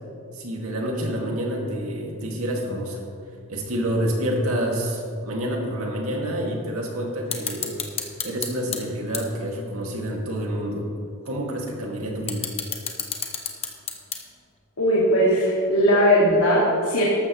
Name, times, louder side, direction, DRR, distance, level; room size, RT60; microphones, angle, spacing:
voice 1, 0.3-3.0 3.5-7.7 8.2-10.9 11.3-12.5, equal, 80° right, -1 dB, 2.2 m, -28 dB
sound 1, 7.3-8.8 9.1-9.2 9.9-10.0 11.3-11.4 12.0-14.5, left 7 dB, 30° left, 1.1 m, -29 dB
voice 2, 14.8-17.1, equal, 85° left, -6 dB, 2.2 m, -19 dB
13.5 x 12.5 x 3.1 m, 2.5 s
head